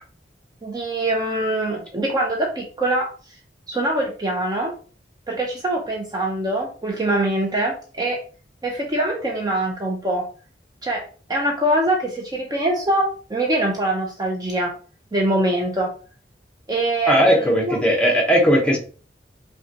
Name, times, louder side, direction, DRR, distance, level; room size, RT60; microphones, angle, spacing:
voice 1, 0.6-3.1 3.7-4.7 5.3-8.2 8.6-10.3 10.8-11.0 11.3-14.7 15.1-15.9 16.7-17.8, right 1 dB, 25° right, 0 dB, 0.6 m, -23 dB
voice 2, 17.0-18.8, equal, 5° left, 0 dB, 0.9 m, -17 dB
5.3 x 2.3 x 2.8 m, 0.38 s
head